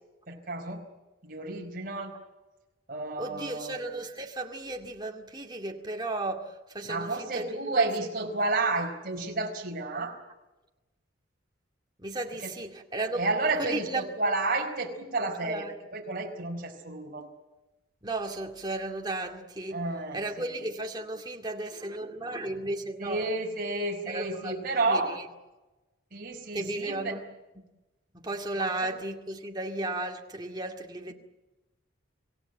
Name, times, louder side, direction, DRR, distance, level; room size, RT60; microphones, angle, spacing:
voice 1, 0.3-0.8 1.2-2.1 2.9-3.8 6.8-10.2 12.4-12.5 13.1-15.7 15.9-17.3 19.7-20.2 23.0-25.1 26.1-27.2 28.8-28.9, right 2 dB, 45° right, 4.5 m, -31 dB
voice 2, 3.2-7.9 12.0-13.2 13.6-14.1 15.4-15.8 18.0-19.8 20.1-23.3 24.1-25.3 26.5-27.3 27.5-27.6 28.1-31.1, right 2 dB, 20° right, 2.2 m, -34 dB
26.5 x 16.5 x 9.1 m
head